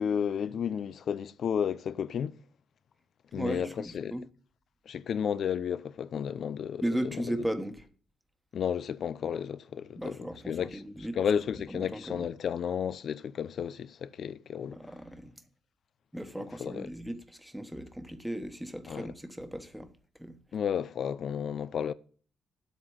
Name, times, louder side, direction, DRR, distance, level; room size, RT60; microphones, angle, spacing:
voice 1, 0.0-2.4 3.3-4.1 4.9-7.4 8.5-10.2 10.5-10.8 11.1-14.8 16.4-16.9 18.9-19.1 20.5-21.9, left 8 dB, 60° left, 0.6 m, -32 dB
voice 2, 3.3-4.2 6.8-7.9 10.0-11.2 11.7-12.3 14.7-15.3 16.1-19.9 20.2-20.4, right 1 dB, 5° right, 1.4 m, -36 dB
8.6 x 8.1 x 7.3 m
cardioid pair, 115°, 0 cm